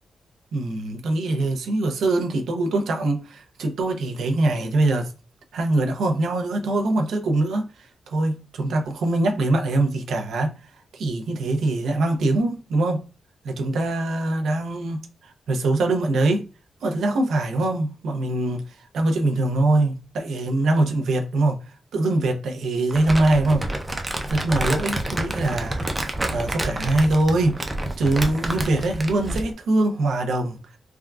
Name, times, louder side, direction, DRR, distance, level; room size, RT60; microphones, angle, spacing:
voice 1, 0.5-5.1 5.5-13.0 13.4-16.5 16.8-18.6 18.9-21.6 21.9-23.6 24.3-25.9 26.3-30.6, right 2 dB, 80° right, 0.6 m, -23 dB
Crumpling crinkling, 22.9-29.5, right 1 dB, 15° right, 0.4 m, -29 dB
3.5 x 2.2 x 2.3 m
wide cardioid pair, 140°, 0 cm